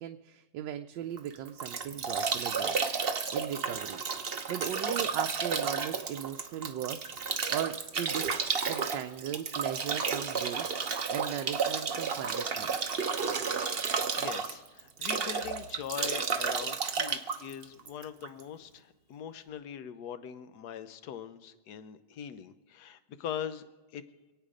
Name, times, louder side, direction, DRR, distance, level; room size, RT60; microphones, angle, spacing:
voice 1, 0.0-2.8 3.3-8.3 8.7-12.7, right 10 dB, 80° right, 6 dB, 1.3 m, -38 dB
Bathtub (filling or washing) / Drip / Trickle dribble, 1.2-18.4, right 5 dB, 40° right, 0.9 m, -32 dB
voice 2, 13.7-23.7 23.9-24.0, left 8 dB, 65° left, 11 dB, 1.4 m, -42 dB
26.5 x 9.0 x 5.1 m, 1.2 s
omnidirectional pair, 2.0 m